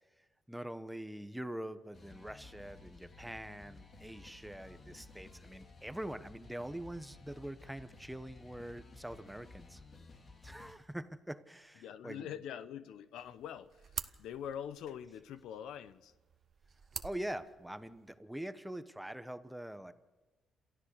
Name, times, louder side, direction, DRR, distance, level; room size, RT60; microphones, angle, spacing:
voice 1, 0.0-9.8 10.4-12.4 14.1-14.2 17.0-19.9, right 1 dB, 5° right, 11 dB, 1.2 m, -44 dB
sound 1, 1.9-10.7, left 3 dB, 45° left, 2.8 m, -55 dB
voice 2, 11.8-13.8 14.2-16.1, left 9 dB, 85° left, 14 dB, 0.8 m, -44 dB
sound 2, 13.2-18.2, right 6 dB, 50° right, 0.9 m, -48 dB
28.0 x 14.0 x 6.7 m, 1.1 s
cardioid pair, 90°, 0 cm